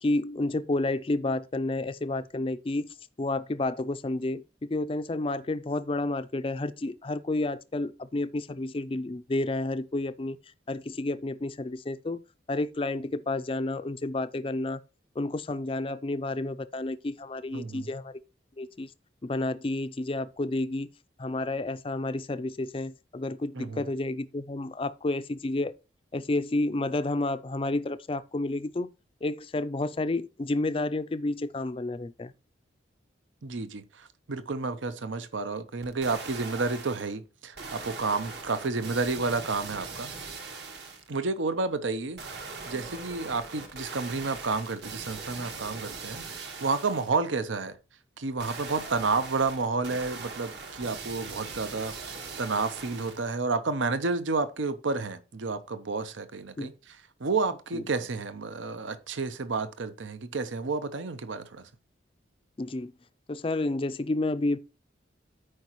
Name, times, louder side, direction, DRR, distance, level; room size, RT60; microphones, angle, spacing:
voice 1, 0.0-2.9 3.2-10.4 10.7-12.2 12.5-14.8 15.2-18.2 18.6-18.9 19.2-20.9 21.2-25.7 26.1-28.9 29.2-32.3 56.6-56.7 57.7-57.8 62.6-62.9 63.3-64.6, left 2 dB, 30° left, 0.4 m, -30 dB
voice 2, 17.5-17.9 23.5-23.8 33.4-40.1 41.1-42.2 42.7-47.7 48.2-56.7 57.2-61.6, right 4 dB, 80° right, 0.8 m, -30 dB
sound 1, 35.8-37.1 37.6-41.1 42.2-47.2 48.4-53.4 53.8-53.9, right 4 dB, 60° right, 1.4 m, -41 dB
13.0 x 4.9 x 3.0 m
head